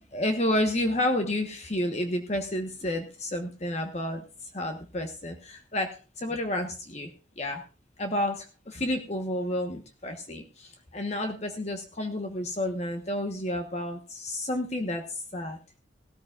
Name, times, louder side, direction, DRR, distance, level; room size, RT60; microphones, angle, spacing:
voice 1, 0.1-4.3 4.5-7.1 7.4-7.6 8.0-15.6, left 1 dB, 35° left, 5 dB, 1.1 m, -30 dB
17.0 x 13.5 x 2.4 m, 0.35 s
head